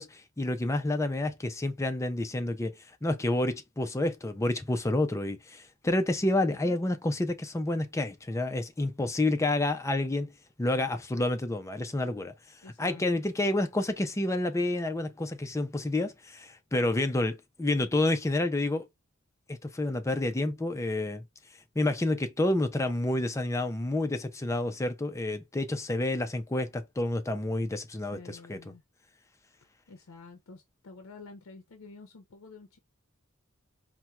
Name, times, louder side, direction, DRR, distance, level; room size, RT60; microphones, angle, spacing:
voice 1, 0.0-2.7 3.0-10.3 10.6-12.3 12.8-18.9 19.5-21.2 21.8-28.6, left 2 dB, 15° left, 0.4 m, -29 dB
voice 2, 12.6-13.2 28.0-28.8 29.9-32.8, left 3 dB, 70° left, 0.6 m, -49 dB
4.2 x 2.1 x 2.3 m
head